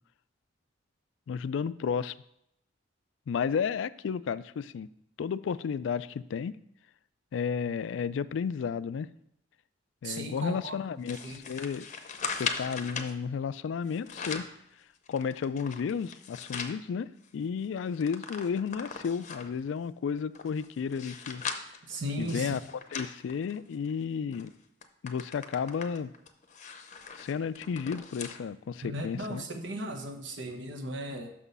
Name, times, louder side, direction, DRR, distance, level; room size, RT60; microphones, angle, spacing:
voice 1, 1.3-2.1 3.3-4.9 5.2-6.5 7.3-9.1 10.0-11.9 12.3-14.5 15.1-21.4 22.2-22.6 22.9-24.5 25.0-26.1 27.1-29.4, left 6 dB, 75° left, 16 dB, 0.3 m, -32 dB
voice 2, 10.0-10.8 11.2-11.4 21.9-22.6 28.8-31.3, right 1 dB, 70° right, 5 dB, 1.1 m, -36 dB
sound 1, 11.1-13.1 13.9-14.6 15.1-16.8 17.2-17.3 17.6-19.6 20.2-23.9 24.3-24.5 24.8-28.4 28.8-28.9 29.8-29.9, left 5 dB, 40° left, 0.7 m, -39 dB
6.1 x 6.1 x 5.4 m, 0.79 s
head